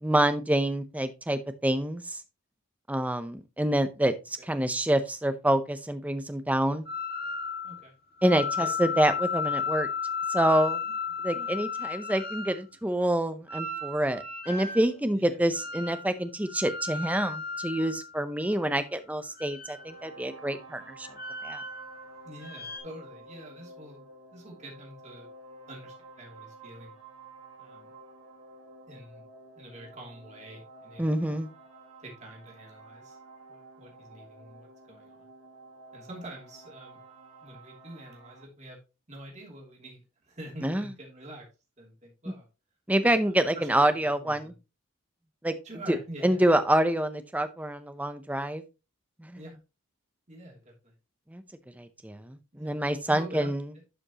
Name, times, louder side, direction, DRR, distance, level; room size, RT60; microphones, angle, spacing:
voice 1, 0.0-2.2 2.9-6.9 8.2-9.9 10.3-10.8 11.2-21.1 21.4-21.6 31.0-31.5 40.6-40.9 42.9-44.5 45.4-45.5 45.9-46.0 46.2-48.6 49.2-49.4 51.3-51.4 51.8-53.6, right 1 dB, 5° right, 10 dB, 0.6 m, -27 dB
sound 1, 6.9-7.8 8.2-12.6 13.5-14.9 15.5-16.1 16.4-18.7 19.3-20.1 21.0-22.0 22.4-22.8, left 5 dB, 45° left, 1.5 m, -34 dB
sound 2, 19.6-38.4, right 2 dB, 80° right, 1.7 m, -51 dB
voice 2, 22.2-24.1 24.3-25.3 25.7-26.9 27.6-27.9 28.9-29.2 29.6-31.3 32.0-33.2 33.5-35.3 35.9-37.0 37.4-38.8 39.1-41.4 41.8-42.5 43.0-44.5 45.6-46.4 49.3-49.6 50.3-50.9 52.5-53.8, right 1 dB, 30° right, -1 dB, 2.7 m, -46 dB
11.0 x 5.1 x 2.9 m, 0.28 s
head